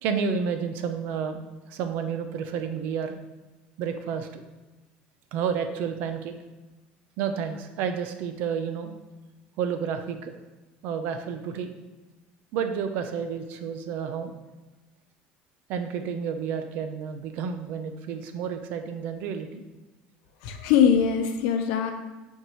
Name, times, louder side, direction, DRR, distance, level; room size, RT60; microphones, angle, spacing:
voice 1, 0.0-3.2 3.8-4.4 5.3-6.3 7.2-8.9 9.6-10.3 10.8-11.7 12.5-14.3 15.7-19.6, right 7 dB, 55° right, 7 dB, 0.6 m, -30 dB
voice 2, 20.4-21.9, left 8 dB, 75° left, 5 dB, 0.8 m, -22 dB
7.9 x 4.5 x 3.0 m, 1.2 s
cardioid pair, 170°, 4 cm